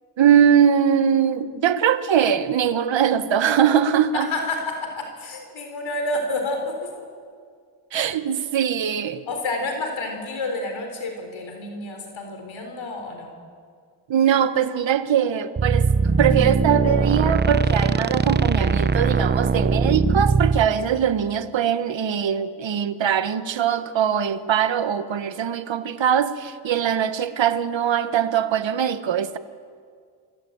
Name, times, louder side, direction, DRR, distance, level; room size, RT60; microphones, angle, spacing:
voice 1, 0.2-4.3 7.9-9.2 14.1-29.4, right 8 dB, 70° right, 1.4 m, -21 dB
voice 2, 4.2-7.1 9.3-13.3, left 2 dB, 80° left, 4.0 m, -29 dB
sound 1, 15.6-20.7, right 4 dB, 20° right, 0.8 m, -20 dB
27.5 x 24.5 x 8.7 m
wide cardioid pair, 115°, 46 cm